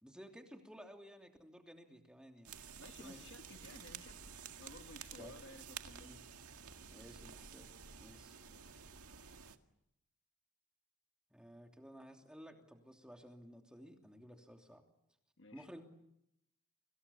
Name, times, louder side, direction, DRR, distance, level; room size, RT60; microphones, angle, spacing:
voice 1, 0.0-2.5 3.0-3.3 5.1-5.3 6.0-6.2 6.9-7.7 8.0-8.3 11.3-14.8 15.5-15.8, equal, 5° right, 3 dB, 2.9 m, -55 dB
sound 1, 2.5-9.6, right 7 dB, 90° right, 2.0 m, -52 dB
voice 2, 2.7-4.3 4.6-6.1 8.3-8.7 15.4-15.7, left 2 dB, 55° left, 7 dB, 1.6 m, -56 dB
30.0 x 25.5 x 7.1 m, 0.81 s
head